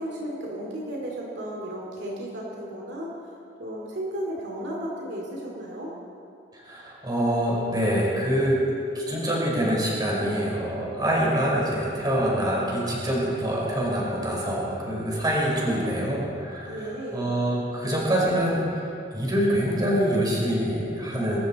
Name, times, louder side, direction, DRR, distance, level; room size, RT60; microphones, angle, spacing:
voice 1, 0.0-3.1 3.6-5.9 15.5-16.2 16.6-17.3, right 1 dB, 65° right, -3 dB, 2.5 m, -34 dB
voice 2, 6.6-8.6 8.9-18.6 19.1-21.4, equal, 20° right, -4 dB, 4.3 m, -25 dB
22.5 x 14.0 x 4.2 m, 2.6 s
head